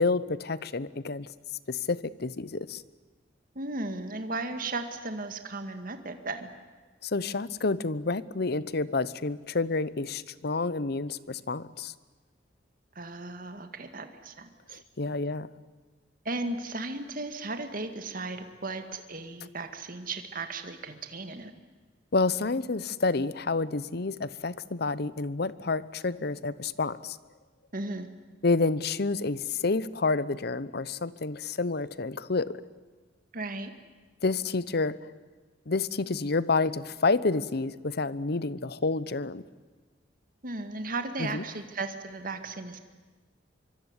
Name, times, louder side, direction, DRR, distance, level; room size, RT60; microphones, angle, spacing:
voice 1, 0.0-1.3 1.7-2.8 7.0-11.9 14.7-15.5 22.1-27.2 28.4-32.6 34.2-35.1 35.7-39.4 41.2-41.4, left 3 dB, 60° left, 18 dB, 0.8 m, -29 dB
voice 2, 3.6-6.5 13.0-14.8 16.3-21.5 27.7-28.1 33.3-33.7 40.4-42.8, right 2 dB, 50° right, 8 dB, 2.0 m, -36 dB
24.5 x 24.5 x 9.7 m, 1.3 s
head